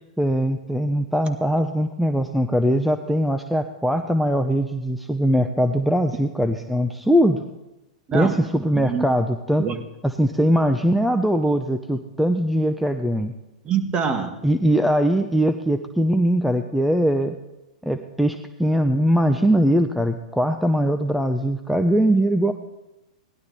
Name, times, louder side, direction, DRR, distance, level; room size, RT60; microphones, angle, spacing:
voice 1, 0.2-7.4 8.1-9.6 10.0-13.3 14.4-17.4 17.8-22.5, equal, ahead, 7 dB, 0.7 m, -21 dB
voice 2, 13.6-14.4, right 6 dB, 25° right, 8 dB, 1.7 m, -24 dB
17.5 x 11.5 x 4.2 m, 0.98 s
hypercardioid pair, 115°, 4 cm